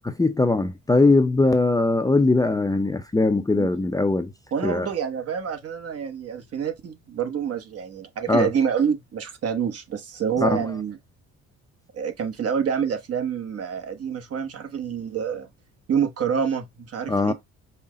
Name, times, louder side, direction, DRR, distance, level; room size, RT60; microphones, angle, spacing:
voice 1, 0.0-4.3 4.6-4.9 8.3-8.6 10.4-10.7 17.1-17.3, left 3 dB, 10° left, 0.5 m, -21 dB
voice 2, 4.5-11.0 11.9-15.5 15.9-17.3, right 7 dB, 50° right, 1.1 m, -27 dB
5.5 x 2.2 x 3.7 m
cardioid pair, 90°, 30 cm